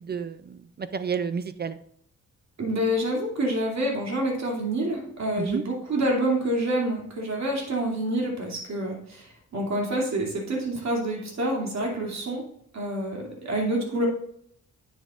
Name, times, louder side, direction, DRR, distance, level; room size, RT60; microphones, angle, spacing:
voice 1, 0.0-1.8 5.4-5.6, right 6 dB, 35° right, 12 dB, 0.4 m, -30 dB
voice 2, 2.6-12.4 12.7-14.1, right 1 dB, 60° right, -1 dB, 2.6 m, -27 dB
9.9 x 7.4 x 2.5 m, 0.67 s
wide cardioid pair, 115°, 30 cm